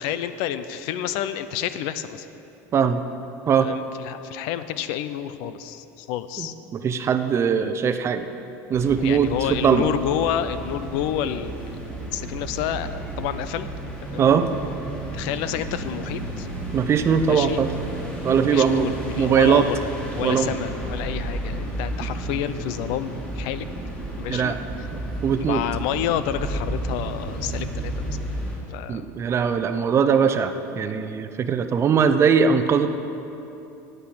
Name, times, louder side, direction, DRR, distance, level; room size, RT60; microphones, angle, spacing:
voice 1, 0.0-2.3 3.6-6.5 9.0-13.7 14.1-14.2 15.1-16.5 17.2-17.6 18.5-19.8 20.1-23.7 24.2-24.6 25.4-28.2 28.7-29.1, left 10 dB, 70° left, 12 dB, 0.6 m, -29 dB
voice 2, 6.4-8.3 8.7-9.9 14.2-14.5 16.7-17.7 18.2-19.6 20.2-20.5 24.3-24.6 24.9-25.6 28.9-32.9, right 7 dB, 35° right, 9 dB, 0.7 m, -21 dB
sound 1, 8.7-28.6, right 1 dB, 10° left, 2.7 m, -32 dB
9.5 x 8.1 x 8.6 m, 2.9 s
supercardioid pair, 120°, 8 cm